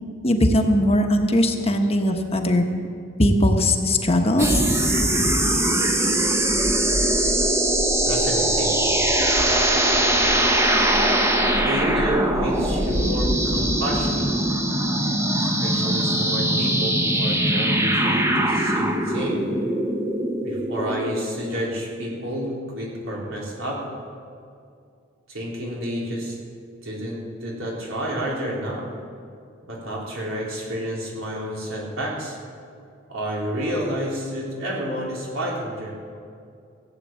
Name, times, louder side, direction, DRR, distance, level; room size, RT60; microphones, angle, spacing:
voice 1, 0.2-2.6 3.2-4.6, left 1 dB, 30° left, 4 dB, 1.1 m, -19 dB
sound 1, 4.4-21.2, right 1 dB, 15° right, 0.9 m, -21 dB
voice 2, 8.1-8.8 11.6-14.4 15.4-19.5 20.4-23.9 25.3-26.4 26.8-28.9 29.7-32.4 33.1-35.9, right 1 dB, 85° right, -4 dB, 3.8 m, -30 dB
16.0 x 8.4 x 7.6 m, 2.4 s
head